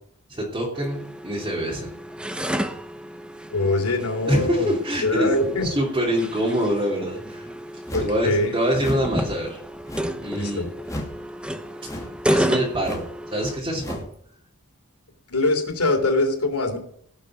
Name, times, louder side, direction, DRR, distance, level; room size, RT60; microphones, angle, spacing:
voice 1, 0.3-1.9 4.3-5.3 5.5-7.5 8.0-9.6 10.2-10.7 12.3-13.0 13.3-14.0, equal, 20° right, -5 dB, 3.1 m, -25 dB
sound 1, 0.7-13.6, equal, 5° right, 0.9 m, -31 dB
voice 2, 3.5-5.7 7.9-8.5 10.3-10.7 15.3-16.8, left 2 dB, 90° left, 4 dB, 3.2 m, -23 dB
sound 2, 7.9-8.2 8.8-9.1 9.9-10.3 10.8-11.2 11.8-12.2 12.8-13.1 13.8-14.1, left 1 dB, 15° left, 2.6 m, -33 dB
18.5 x 6.5 x 6.1 m, 0.64 s
head